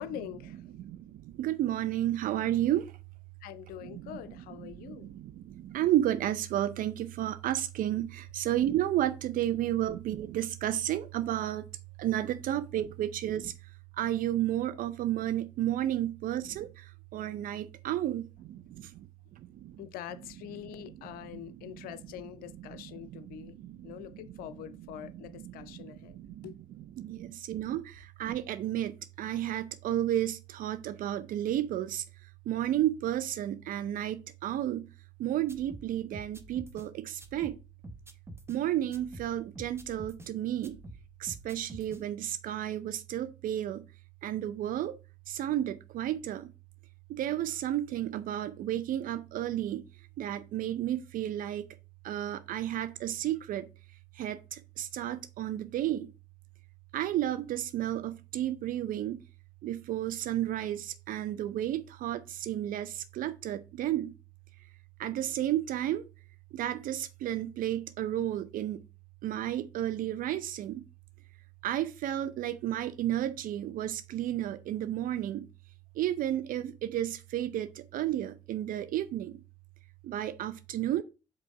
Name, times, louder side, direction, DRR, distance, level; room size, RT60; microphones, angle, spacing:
voice 1, 0.0-0.6 3.4-5.1 19.8-23.6 23.8-26.6, left 11 dB, 65° left, 0.5 m, -44 dB
voice 2, 0.8-2.9 3.8-4.2 4.6-11.7 12.0-13.5 14.0-19.1 19.4-19.8 21.3-21.4 22.7-24.0 25.0-25.1 25.4-26.5 27.0-32.0 32.5-34.9 35.2-37.6 38.5-40.8 41.2-43.8 44.2-45.0 45.3-46.5 47.1-49.8 50.2-51.7 52.0-53.7 54.2-56.1 56.9-59.2 59.6-64.1 65.0-66.0 66.5-68.8 69.2-70.8 71.6-75.5 76.0-79.4 80.0-81.0, right 12 dB, 60° right, 0.5 m, -32 dB
sound 1, 35.5-36.9 37.2-38.6 38.9-40.3 40.6-42.0, right 1 dB, 15° right, 1.0 m, -48 dB
5.1 x 4.1 x 4.7 m
hypercardioid pair, 45°, 16 cm